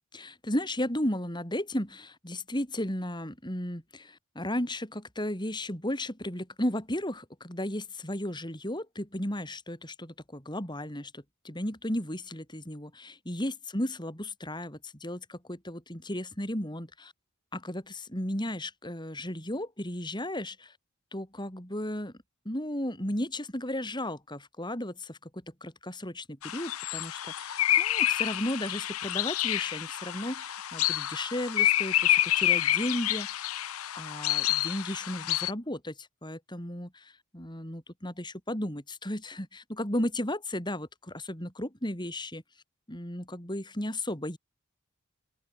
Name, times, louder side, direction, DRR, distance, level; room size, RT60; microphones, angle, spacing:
voice 1, 0.1-17.1 17.5-20.7 21.1-22.1 22.4-25.3 25.6-33.6 33.9-42.4 42.9-44.4, left 1 dB, 20° left, 6.1 m, -34 dB
sound 1, 26.4-35.5, left 13 dB, 85° left, 0.8 m, -28 dB
open air
head